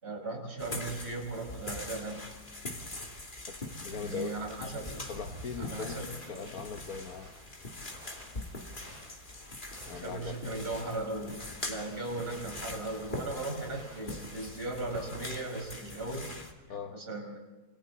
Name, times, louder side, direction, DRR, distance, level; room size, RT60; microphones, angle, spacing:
voice 1, 0.0-2.3 3.9-5.2 5.6-6.5 9.9-16.4 16.7-17.4, right 2 dB, 40° right, 2 dB, 5.5 m, -38 dB
sound 1, 0.6-16.5, left 2 dB, 30° left, 2.8 m, -43 dB
voice 2, 3.8-4.3 5.1-7.3 9.9-10.4 16.7-17.0, left 6 dB, 70° left, 4 dB, 1.6 m, -40 dB
sound 2, 3.9-15.4, right 1 dB, 65° right, 6.7 m, -55 dB
27.5 x 25.0 x 4.1 m, 1.2 s
omnidirectional pair, 1.6 m